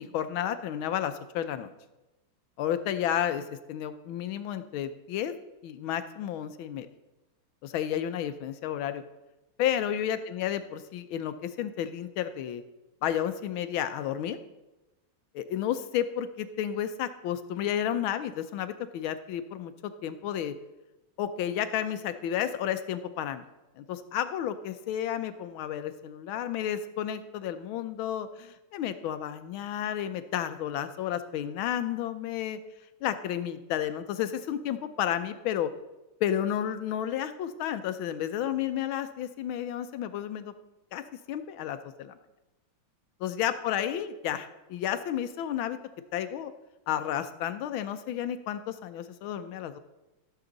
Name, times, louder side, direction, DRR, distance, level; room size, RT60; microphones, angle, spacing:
voice 1, 0.0-1.7 2.6-3.4 3.7-5.3 5.6-6.9 7.6-9.0 9.6-12.6 13.0-14.4 15.3-19.7 20.0-20.5 21.2-23.4 23.8-32.6 33.0-35.7 36.2-40.5 40.9-41.0 41.3-42.2 43.2-45.8 46.1-46.5 46.9-49.8, left 10 dB, 75° left, 11 dB, 1.4 m, -31 dB
14.5 x 7.0 x 3.9 m, 1.0 s
omnidirectional pair, 2.3 m